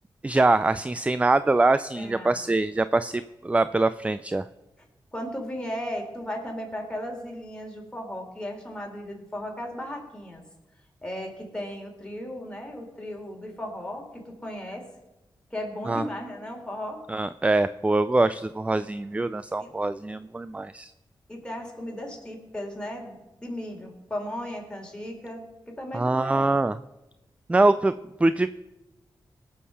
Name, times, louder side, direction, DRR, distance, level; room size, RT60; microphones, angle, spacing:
voice 1, 0.2-4.4 15.9-16.0 17.1-20.9 25.9-26.8 27.5-27.9 28.2-28.5, right 2 dB, 15° right, 14 dB, 0.4 m, -23 dB
voice 2, 2.0-2.3 5.1-10.4 11.0-14.9 15.5-17.0 19.6-19.7 21.3-26.5, left 1 dB, 10° left, 0 dB, 3.7 m, -36 dB
18.5 x 6.6 x 5.6 m, 1.0 s
cardioid pair, 60°, 8 cm